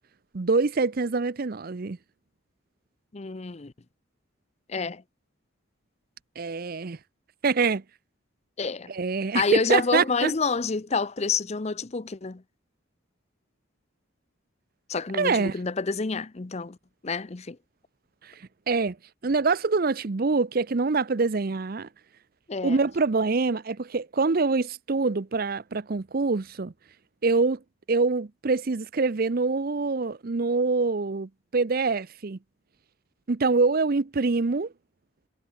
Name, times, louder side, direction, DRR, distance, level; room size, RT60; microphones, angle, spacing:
voice 1, 0.3-2.0 6.4-7.0 7.4-7.8 8.9-10.3 15.1-15.5 18.2-19.0 19.2-21.9 22.6-26.7 27.2-27.6 27.9-32.4 33.3-34.7, right 4 dB, 45° right, 0.6 m, -25 dB
voice 2, 3.1-3.7 4.7-5.0 8.6-8.9 9.3-12.4 14.9-16.8 17.0-17.6 22.5-22.8, left 4 dB, 30° left, 0.6 m, -28 dB
head